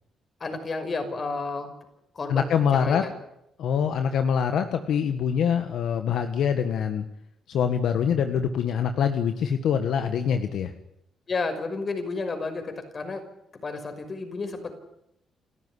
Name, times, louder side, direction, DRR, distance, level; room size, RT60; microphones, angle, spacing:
voice 1, 0.4-1.7 2.1-3.1 11.3-13.2 13.5-14.7, left 3 dB, 40° left, 7 dB, 5.7 m, -31 dB
voice 2, 2.3-3.0 3.6-7.0 7.5-10.7, left 7 dB, 75° left, 8 dB, 1.6 m, -24 dB
29.0 x 14.0 x 10.0 m, 0.82 s
cardioid pair, 90°, 0 cm